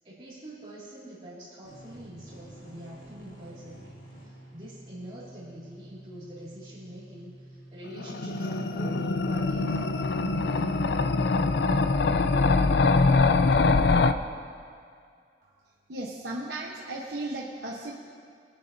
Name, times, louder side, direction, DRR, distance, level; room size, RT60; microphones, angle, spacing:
voice 1, 0.0-10.6, right 1 dB, 30° right, -11 dB, 2.3 m, -45 dB
sound 1, 1.6-5.4, equal, 55° left, 2.3 m, -52 dB
sound 2, 1.6-9.9, right 1 dB, 60° right, 2.5 m, -50 dB
sound 3, 7.9-14.1, left 3 dB, 75° left, 0.4 m, -23 dB
voice 2, 15.9-17.9, right 2 dB, 80° right, -3 dB, 1.0 m, -35 dB
21.5 x 9.1 x 2.7 m, 2.2 s
head